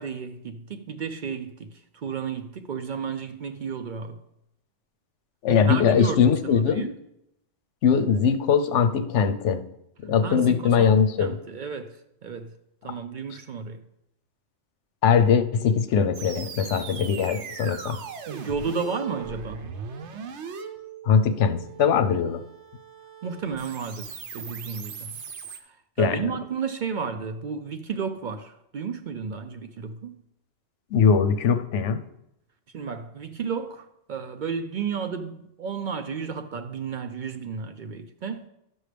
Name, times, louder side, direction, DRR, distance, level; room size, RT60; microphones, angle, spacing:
voice 1, 0.0-4.2 5.5-7.0 10.2-12.5 12.8-13.8 18.3-19.7 23.2-25.1 26.0-30.2 32.7-38.5, right 6 dB, 60° right, 0.5 m, -32 dB
voice 2, 5.4-6.9 7.8-9.7 10.0-11.3 15.0-18.0 21.0-22.4 26.0-26.2 30.9-32.0, left 6 dB, 90° left, 1.0 m, -21 dB
sound 1, 16.1-25.6, right 6 dB, 80° right, 1.0 m, -39 dB
12.5 x 6.3 x 3.3 m
omnidirectional pair, 1.2 m